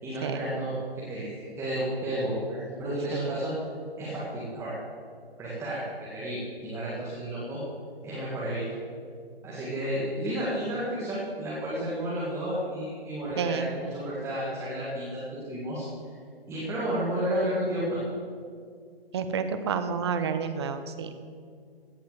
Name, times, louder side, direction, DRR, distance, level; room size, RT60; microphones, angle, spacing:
voice 1, 0.0-3.5 4.0-4.8 5.4-5.8 6.1-7.6 8.0-8.8 9.4-15.2 15.5-15.8 16.5-18.0, right 1 dB, 10° right, -8 dB, 1.9 m, -31 dB
voice 2, 13.4-13.7 19.1-21.2, right 6 dB, 25° right, 9 dB, 0.8 m, -30 dB
16.5 x 5.5 x 7.7 m, 2.1 s
figure-of-eight pair, 145°, 31 cm